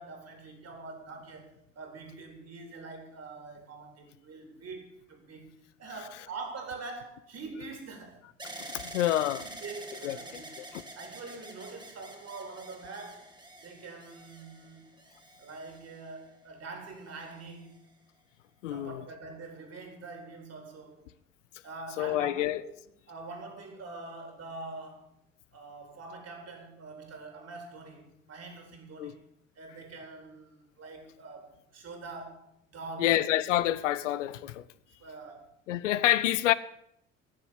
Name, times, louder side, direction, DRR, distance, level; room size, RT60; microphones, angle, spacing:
voice 1, 0.0-5.5 5.8-8.2 9.4-10.6 11.0-13.3 13.6-14.8 15.4-17.8 18.7-21.1 21.6-22.7 23.1-25.1 25.5-29.2 29.6-32.5 32.7-33.2 35.0-35.5, right 3 dB, 40° right, 3.7 m, -44 dB
sound 1, 8.4-16.4 17.1-17.8, right 1 dB, 10° right, 2.2 m, -47 dB
voice 2, 8.7-9.4 10.0-10.2 18.6-19.0 22.0-22.6 29.0-29.1 33.0-34.6 35.7-36.5, left 14 dB, 75° left, 0.6 m, -27 dB
14.5 x 7.0 x 8.6 m
figure-of-eight pair, 55°, 38 cm